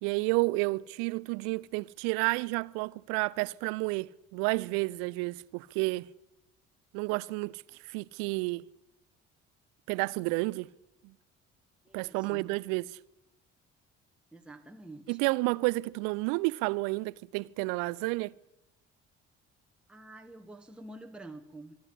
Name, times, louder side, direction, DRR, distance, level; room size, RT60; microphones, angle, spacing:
voice 1, 0.0-6.1 6.9-8.6 9.9-10.7 11.9-12.9 15.1-18.3, right 24 dB, 60° right, 0.7 m, -31 dB
voice 2, 11.8-12.5 14.3-15.2 19.9-21.8, right 2 dB, 5° right, 1.5 m, -48 dB
24.0 x 12.0 x 9.8 m
figure-of-eight pair, 50°, 38 cm